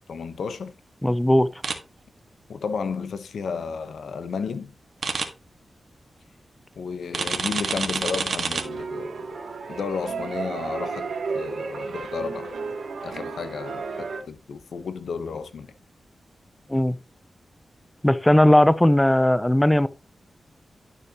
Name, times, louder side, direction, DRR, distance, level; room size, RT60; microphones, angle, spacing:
voice 1, 0.1-0.7 2.5-4.7 6.8-11.1 11.3-12.5 13.0-15.7, left 5 dB, 90° left, 1.0 m, -32 dB
voice 2, 1.0-1.5 16.7-17.0 18.0-19.9, left 1 dB, 10° left, 0.6 m, -18 dB
sound 1, 1.6-1.8 5.0-5.3 7.1-8.6, right 5 dB, 65° right, 1.7 m, -27 dB
sound 2, 8.6-14.2, right 4 dB, 85° right, 2.5 m, -33 dB
11.5 x 6.6 x 3.0 m
cardioid pair, 75°, 0 cm